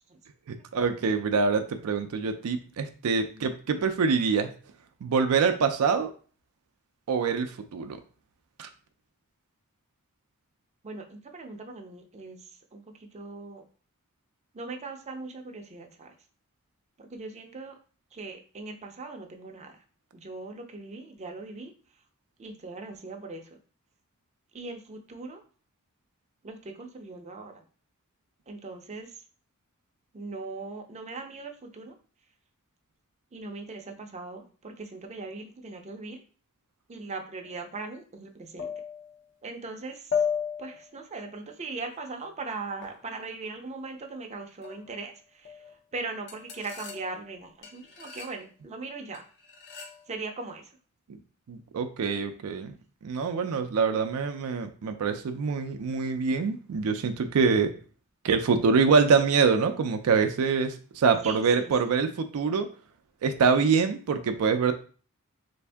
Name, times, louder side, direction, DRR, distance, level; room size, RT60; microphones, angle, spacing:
voice 1, 0.5-4.5 5.0-6.1 7.1-8.0 8.6-8.7 51.5-52.7 53.0-57.7 58.2-62.7 63.2-64.7, right 5 dB, 85° right, 7 dB, 0.4 m, -25 dB
voice 2, 10.8-12.4 12.7-12.8 13.1-13.6 14.5-16.1 17.0-17.7 18.1-19.8 20.1-21.7 22.4-23.4 24.5-25.4 26.4-27.5 28.5-29.1 30.1-31.9 33.3-36.2 36.9-38.7 39.4-40.0 40.6-45.1 45.9-49.2 50.1-50.6 61.2-61.4, right 3 dB, 30° right, 4 dB, 0.5 m, -39 dB
sound 1, 37.4-37.6 38.6-39.2 40.1-40.9 42.8-43.0 44.6-45.1 45.5-45.7 46.3-47.3 47.6-48.4 49.1-50.1, left 7 dB, 50° left, 0.7 m, -35 dB
3.4 x 2.6 x 3.4 m, 0.40 s
head